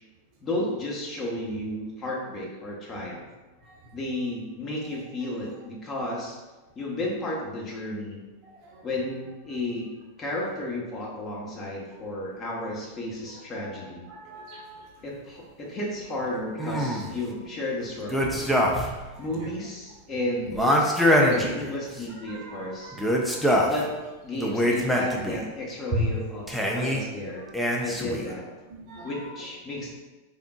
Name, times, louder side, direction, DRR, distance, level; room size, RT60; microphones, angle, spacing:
voice 1, 0.4-3.2 3.9-6.4 6.7-8.2 8.8-9.9 10.2-14.1 15.0-18.4 19.2-23.0 23.6-23.9 24.2-27.4 27.8-28.5 29.0-29.9, left 1 dB, 25° left, -3 dB, 1.0 m, -33 dB
voice 2, 14.1-14.8 19.3-19.5 20.9-21.2 22.3-23.1 25.9-26.0 28.7-29.2, right 1 dB, 40° right, -2 dB, 0.8 m, -36 dB
sound 1, 16.6-17.2 18.1-19.0 19.3-19.4 20.5-22.0 22.9-23.8 24.4-25.4 26.5-27.0 27.5-28.3, equal, ahead, 0.5 m, -24 dB
4.3 x 3.6 x 2.3 m, 1.1 s
figure-of-eight pair, 90°, 0 cm